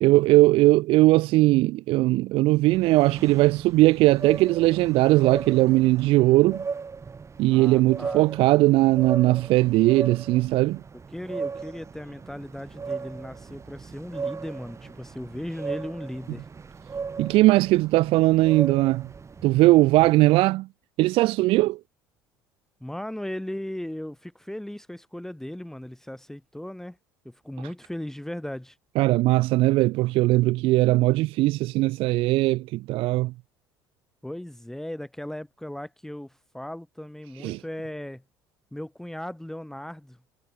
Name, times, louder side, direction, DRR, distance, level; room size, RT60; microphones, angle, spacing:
voice 1, 0.0-6.6 7.4-10.8 17.2-19.1 19.4-20.7 21.0-21.8 29.0-33.3 37.4-37.6, right 19 dB, 50° right, 0.4 m, -19 dB
sound 1, 2.7-20.1, right 5 dB, 25° right, 1.4 m, -37 dB
voice 2, 7.5-8.3 11.1-16.5 20.0-20.1 22.8-27.0 27.3-28.8 34.2-38.2 38.7-40.2, left 1 dB, 5° left, 1.8 m, -37 dB
figure-of-eight pair, 60°, 12 cm